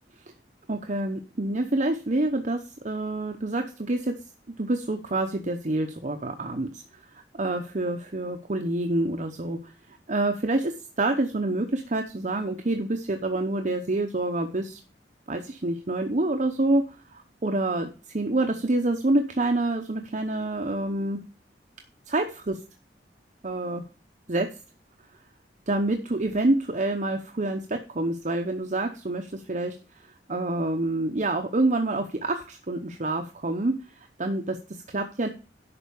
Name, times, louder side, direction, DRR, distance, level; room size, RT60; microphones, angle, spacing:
voice 1, 0.7-4.1 4.6-6.8 7.4-9.7 10.1-14.8 15.3-16.8 17.1-21.2 22.1-22.6 23.4-23.8 24.3-24.5 25.7-29.7 30.3-35.3, right 2 dB, 40° right, 4 dB, 0.8 m, -27 dB
11.0 x 4.5 x 6.9 m, 0.36 s
head